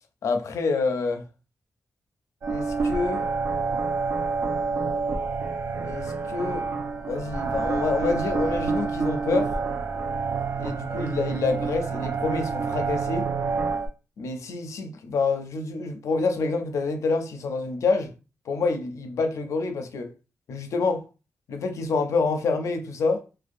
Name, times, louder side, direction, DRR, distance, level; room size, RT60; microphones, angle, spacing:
voice 1, 0.2-1.2 2.5-3.3 5.8-6.7 7.1-9.6 10.6-13.3 14.2-18.1 18.5-20.1 20.5-21.1 21.5-23.2, left 4 dB, 75° left, 0.4 m, -27 dB
sound 1, 2.4-13.9, right 4 dB, 60° right, 0.4 m, -28 dB
2.5 x 2.2 x 2.4 m
wide cardioid pair, 120°, 5 cm